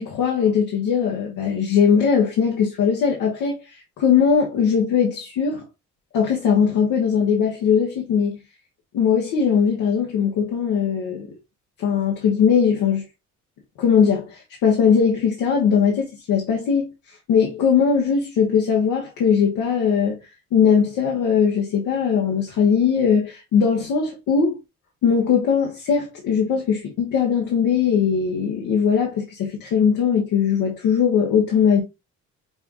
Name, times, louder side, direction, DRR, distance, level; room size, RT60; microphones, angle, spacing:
voice 1, 0.0-5.6 6.1-8.4 8.9-11.3 11.8-13.0 13.8-16.9 17.3-20.2 20.5-24.6 25.0-31.8, left 7 dB, 90° left, 1.3 m, -20 dB
6.1 x 2.4 x 3.0 m
cardioid pair, 90°, 30 cm